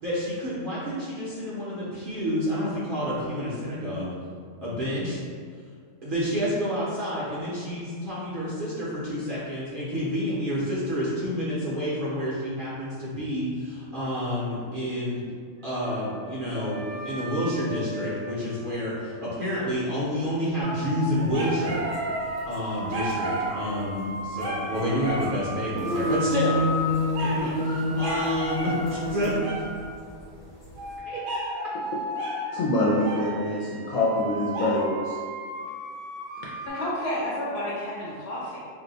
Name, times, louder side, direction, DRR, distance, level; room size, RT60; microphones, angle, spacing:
voice 1, 0.0-4.1 4.6-5.2 6.0-15.2 15.6-21.8 22.4-26.6 27.2-29.3 31.1-31.2, equal, 50° right, -8 dB, 0.7 m, -29 dB
Wind instrument woodwind instrument, 15.6-19.7, right 1 dB, 20° left, 0.4 m, -40 dB
sound 1, 20.6-29.9 30.8-36.7, right 1 dB, 70° right, 1.0 m, -33 dB
sound 2, 21.9-22.0 22.4-22.5 22.9-23.1 24.4-24.9 25.2-25.3 25.5-31.0, left 1 dB, 40° left, 1.0 m, -29 dB
voice 2, 32.5-35.2, left 1 dB, 90° left, -6 dB, 1.0 m, -25 dB
voice 3, 36.6-38.6, left 1 dB, 60° left, -6 dB, 0.7 m, -30 dB
2.6 x 2.2 x 3.8 m, 2.1 s
omnidirectional pair, 1.4 m